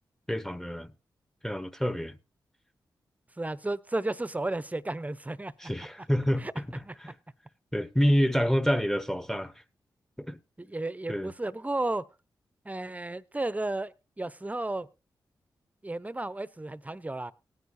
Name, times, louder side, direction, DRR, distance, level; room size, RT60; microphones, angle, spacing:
voice 1, 0.3-0.9 1.4-2.2 5.6-6.7 7.0-7.1 7.7-9.5 10.2-10.4 11.1-11.3, equal, 5° left, 1.0 m, -27 dB
voice 2, 3.4-5.5 6.4-6.5 6.8-6.9 10.6-12.0 12.6-14.9 15.8-17.3, right 2 dB, 20° right, 0.8 m, -33 dB
17.5 x 9.4 x 2.7 m
cardioid pair, 50°, 8 cm